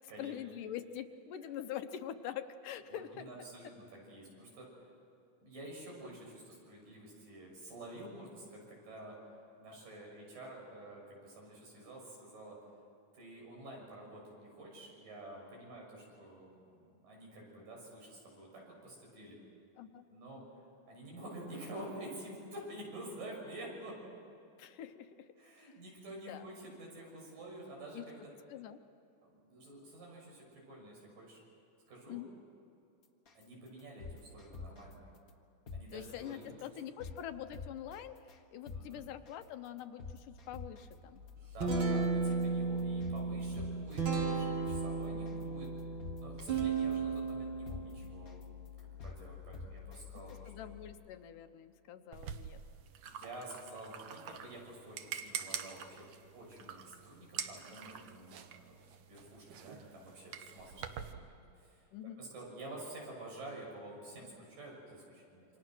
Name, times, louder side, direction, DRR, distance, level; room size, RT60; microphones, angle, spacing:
voice 1, 0.2-3.3 19.8-20.1 24.6-25.3 25.6-25.8 26.3-26.5 27.9-28.0 28.5-28.8 32.1-32.3 35.9-41.2 50.5-52.6 61.9-62.2, left 10 dB, 75° left, 8 dB, 2.5 m, -45 dB
voice 2, 2.9-4.7 5.4-9.2 9.6-12.6 13.1-19.4 20.1-20.4 20.9-24.0 25.4-28.3 29.2-31.4 31.9-32.2 33.3-35.1 35.7-36.6 38.7-39.0 41.5-45.7 46.2-48.5 48.8-50.7 53.0-56.1 56.3-58.8 59.1-61.3 61.6-61.8 62.2-65.5, right 1 dB, 80° right, -2 dB, 8.2 m, -49 dB
sound 1, 33.3-33.4 33.8-34.9 35.3-35.4 35.7-35.8 36.3-36.4 36.8-37.2 37.5-38.0 38.3-38.4 38.7-38.8 39.3-39.4 39.8-40.9 41.3-41.4 41.7-41.8 42.3-42.4 42.8-43.2 43.5-44.4 44.7-44.8 45.3-45.4 45.8-46.9 47.3-47.4 47.7-47.8 48.3-48.4 48.8-49.2 49.5-50.0 50.3-50.4, left 4 dB, 40° left, 1.3 m, -45 dB
Guitar, 41.2-50.9, right 4 dB, 40° right, 2.9 m, -36 dB
sound 2, 52.1-61.1, right 8 dB, 65° right, 1.6 m, -46 dB
28.5 x 25.5 x 6.2 m, 2.8 s
omnidirectional pair, 3.8 m